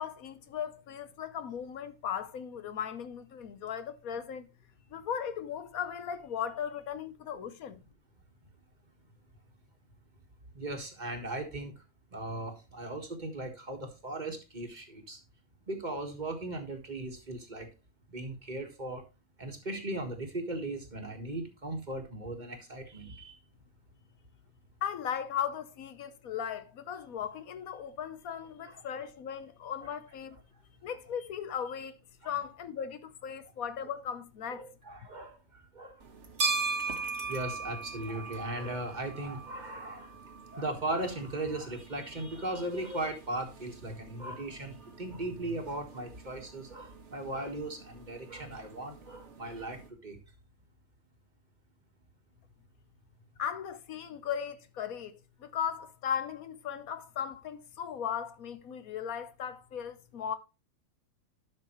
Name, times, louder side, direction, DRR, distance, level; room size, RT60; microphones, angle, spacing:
voice 1, 0.0-4.5 4.9-7.8 24.8-30.4 30.8-32.0 32.2-34.6 53.4-60.4, left 8 dB, 80° left, 1.3 m, -37 dB
voice 2, 10.5-11.8 12.1-15.2 15.7-17.7 18.1-19.0 19.4-23.3 28.6-28.7 29.8-29.9 32.2-32.4 34.5-35.3 35.7-35.9 36.9-40.1 40.5-50.2, right 2 dB, 30° right, 1.7 m, -38 dB
sound 1, 36.0-49.9, right 4 dB, 55° right, 1.5 m, -40 dB
11.5 x 6.2 x 3.1 m
omnidirectional pair, 1.5 m